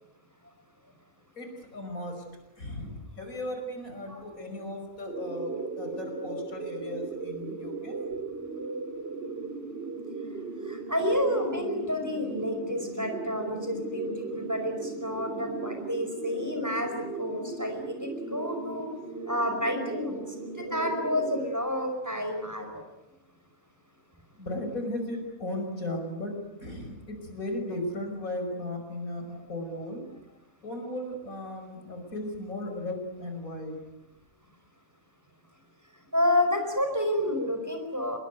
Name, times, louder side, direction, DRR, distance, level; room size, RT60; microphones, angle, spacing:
voice 1, 1.4-2.2 2.6-8.0 24.4-30.0 30.6-33.8, left 1 dB, 70° left, 4 dB, 5.8 m, -36 dB
sound 1, 5.1-21.5, right 4 dB, 45° right, 3.5 m, -37 dB
voice 2, 10.7-18.0 18.3-18.9 19.3-20.2 20.5-22.8 29.7-29.8 36.1-38.2, left 1 dB, 10° right, 5 dB, 5.1 m, -29 dB
26.5 x 21.5 x 9.3 m, 0.99 s
omnidirectional pair, 1.5 m